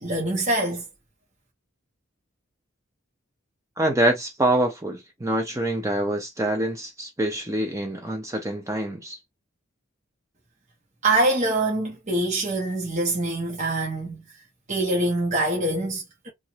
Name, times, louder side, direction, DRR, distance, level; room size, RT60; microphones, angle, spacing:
voice 1, 0.0-0.8 11.0-14.2 14.7-16.3, right 2 dB, 35° right, 1.1 m, -24 dB
voice 2, 3.8-9.2, right 1 dB, 15° right, 0.6 m, -25 dB
2.9 x 2.5 x 2.9 m
head